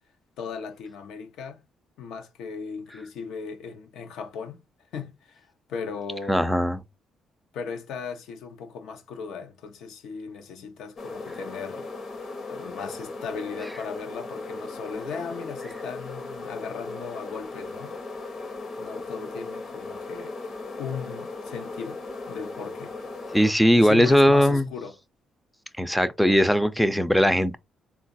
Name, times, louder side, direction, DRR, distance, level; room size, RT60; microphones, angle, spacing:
voice 1, 0.4-1.6 2.0-4.6 4.9-6.6 7.5-11.9 12.5-17.9 18.8-20.4 20.8-22.0 22.3-22.9 23.7-25.0, left 6 dB, 80° left, 0.7 m, -37 dB
voice 2, 6.3-6.8 23.3-24.6 25.8-27.6, equal, ahead, 0.4 m, -19 dB
sound 1, 11.0-23.5, left 3 dB, 50° left, 0.9 m, -37 dB
3.7 x 2.3 x 2.6 m
cardioid pair, 90°, 0 cm